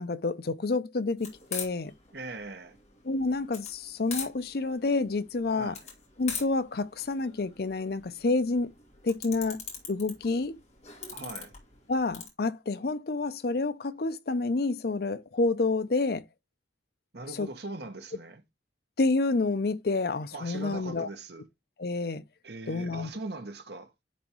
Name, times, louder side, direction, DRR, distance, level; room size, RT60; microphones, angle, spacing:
voice 1, 0.0-1.9 3.0-5.8 6.2-8.7 9.0-9.6 9.9-10.6 11.9-16.2 17.4-17.5 19.0-21.1 21.8-22.2 22.7-23.1, left 3 dB, 55° left, 0.5 m, -29 dB
sound 1, 1.2-12.3, left 6 dB, 35° left, 2.4 m, -42 dB
voice 2, 2.1-2.8 5.6-5.8 11.1-11.5 17.1-18.4 20.3-21.5 22.4-23.9, right 2 dB, 60° right, 1.2 m, -40 dB
10.0 x 3.5 x 3.0 m
head